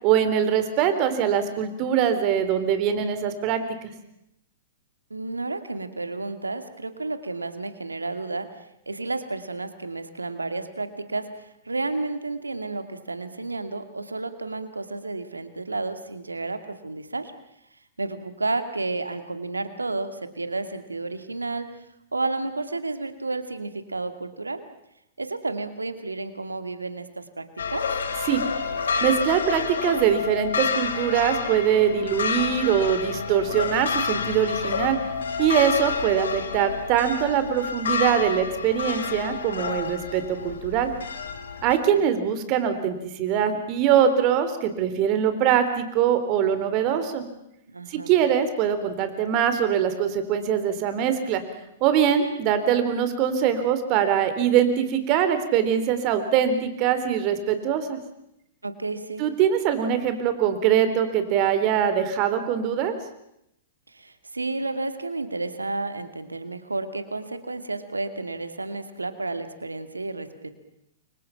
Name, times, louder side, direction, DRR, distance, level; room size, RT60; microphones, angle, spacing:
voice 1, 0.0-3.9 28.3-28.4 29.0-35.0 35.4-40.9 41.6-47.2 47.9-51.4 51.8-58.0 59.2-62.9, right 9 dB, 40° right, 10 dB, 3.7 m, -23 dB
voice 2, 5.1-8.5 8.9-17.3 18.0-21.7 22.1-24.6 25.2-27.9 41.8-42.0 47.7-48.1 58.6-59.3 63.9-70.6, right 3 dB, 90° right, 9 dB, 2.4 m, -31 dB
sound 1, 27.6-41.8, left 5 dB, 75° left, 2.5 m, -29 dB
29.0 x 24.5 x 5.9 m, 0.80 s
figure-of-eight pair, 110°, 0 cm